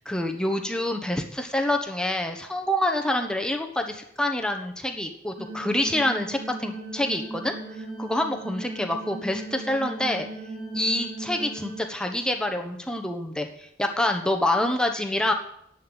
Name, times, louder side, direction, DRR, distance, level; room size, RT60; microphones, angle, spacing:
voice 1, 0.0-10.3 10.7-15.3, left 1 dB, 5° left, 3 dB, 1.1 m, -27 dB
sound 1, 5.4-11.8, right 2 dB, 55° right, 3.6 m, -37 dB
10.5 x 8.0 x 9.0 m, 0.72 s
head